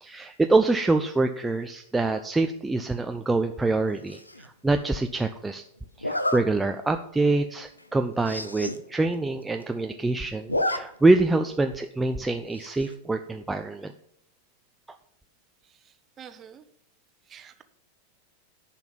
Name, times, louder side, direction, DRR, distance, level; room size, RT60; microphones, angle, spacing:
voice 1, 0.0-5.6 6.0-13.9, right 2 dB, 10° right, 5 dB, 0.6 m, -25 dB
Zipper (clothing), 4.1-4.5 6.0-6.4 7.0-7.1 7.5-7.6 7.8-7.9 8.2-8.8 9.1-9.2 9.4-10.0 10.3-10.8 11.1-11.2 12.5-12.9, left 1 dB, 85° left, 0.8 m, -29 dB
voice 2, 15.6-16.6 17.3-17.6, right 8 dB, 25° right, 9 dB, 1.1 m, -48 dB
10.5 x 5.9 x 7.2 m, 0.72 s
figure-of-eight pair, 90°, 0 cm